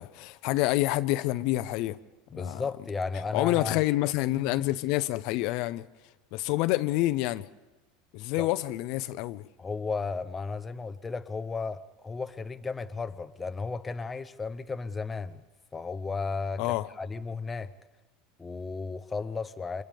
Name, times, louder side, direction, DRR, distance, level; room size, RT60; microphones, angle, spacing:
voice 1, 0.0-2.0 2.3-2.6 3.3-5.9 6.3-7.5 8.1-9.5 16.6-16.9, left 17 dB, 55° left, 0.6 m, -28 dB
voice 2, 2.3-3.8 8.4-8.5 9.6-15.4 15.7-17.7 18.4-19.8, left 4 dB, 15° left, 0.7 m, -34 dB
29.0 x 26.5 x 3.5 m
supercardioid pair, 155°, 0 cm